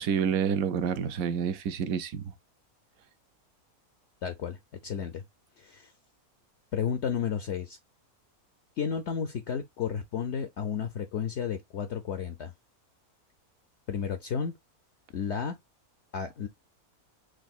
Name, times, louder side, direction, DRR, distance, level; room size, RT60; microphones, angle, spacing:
voice 1, 0.0-2.3, right 7 dB, 75° right, 1.0 m, -28 dB
voice 2, 4.2-5.2 5.6-5.9 6.7-7.8 8.8-12.5 13.9-14.5 15.1-15.6 16.1-16.5, left 7 dB, 65° left, 0.7 m, -32 dB
6.2 x 2.5 x 2.3 m
omnidirectional pair, 1.5 m